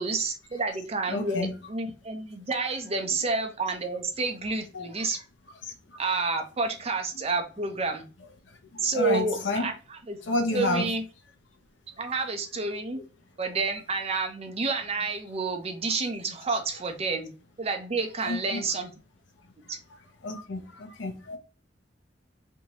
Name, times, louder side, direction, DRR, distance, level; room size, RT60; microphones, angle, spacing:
voice 1, 0.0-5.2 6.0-8.0 8.8-10.2 10.5-11.0 12.0-13.0 13.4-17.3 17.6-18.9 19.7-19.8, right 3 dB, 35° right, 0.7 m, -29 dB
voice 2, 1.1-1.5 4.7-4.9 8.9-9.7 10.3-10.9 16.5-16.6 18.3-18.7 20.2-21.4, left 2 dB, 80° left, 0.8 m, -30 dB
3.4 x 2.7 x 2.9 m
head